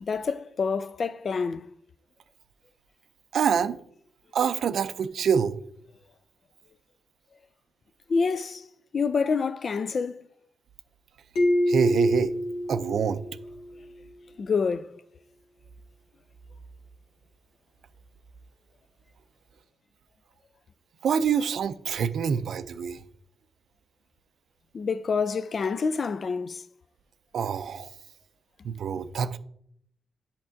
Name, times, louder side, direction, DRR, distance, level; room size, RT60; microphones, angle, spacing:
voice 1, 0.0-1.7 8.1-8.6 8.9-10.3 14.4-15.0 24.7-26.6, left 5 dB, 50° left, 0.3 m, -27 dB
voice 2, 3.3-3.8 4.3-5.5 11.7-12.3 12.7-13.2 21.0-23.0 27.3-27.9 28.6-29.4, right 7 dB, 70° right, 0.4 m, -26 dB
sound 1, 11.4-13.9, left 1 dB, 85° left, 1.6 m, -27 dB
8.5 x 5.8 x 2.6 m
cardioid pair, 70°, 0 cm